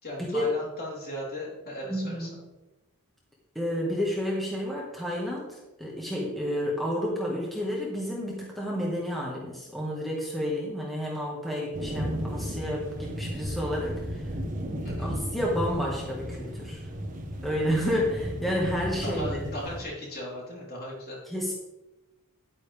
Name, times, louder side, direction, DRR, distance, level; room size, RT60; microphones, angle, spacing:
voice 1, 0.0-2.3 14.8-15.1 19.0-21.2, equal, 45° left, -4 dB, 3.8 m, -37 dB
voice 2, 1.9-2.4 3.6-14.2 15.0-16.8 17.4-19.4 21.3-21.5, equal, ahead, -4 dB, 1.7 m, -30 dB
sound 1, 11.7-19.9, equal, 35° right, 1.3 m, -34 dB
10.5 x 9.7 x 3.5 m, 1.0 s
head